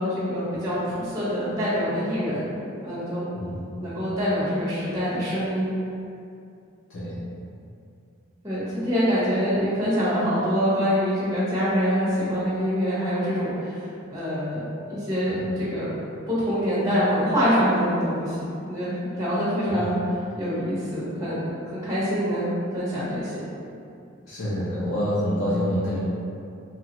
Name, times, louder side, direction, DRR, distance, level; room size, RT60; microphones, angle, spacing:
voice 1, 0.0-2.4 2.8-3.3 3.8-5.7 8.4-15.9 16.3-20.0 20.4-23.4, equal, 20° right, -11 dB, 1.0 m, -25 dB
voice 2, 24.3-26.0, equal, 75° left, -11 dB, 0.7 m, -26 dB
3.3 x 2.3 x 2.9 m, 2.5 s
head